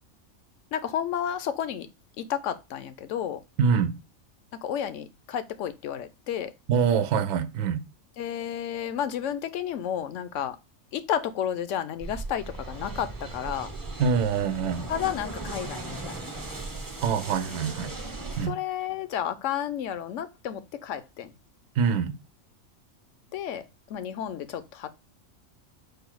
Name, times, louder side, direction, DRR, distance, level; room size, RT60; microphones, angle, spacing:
voice 1, 0.7-1.9 2.2-3.4 4.6-6.5 8.2-10.6 10.9-13.7 14.9-16.5 18.5-21.3 23.3-23.6 23.9-24.9, left 9 dB, 70° left, 0.9 m, -31 dB
voice 2, 3.6-3.9 6.7-7.8 14.0-14.9 17.0-17.9 18.4-18.5 21.8-22.2, right 6 dB, 70° right, 0.9 m, -25 dB
sound 1, 12.0-18.5, right 2 dB, 20° right, 0.6 m, -37 dB
4.8 x 2.3 x 4.5 m
omnidirectional pair, 1.4 m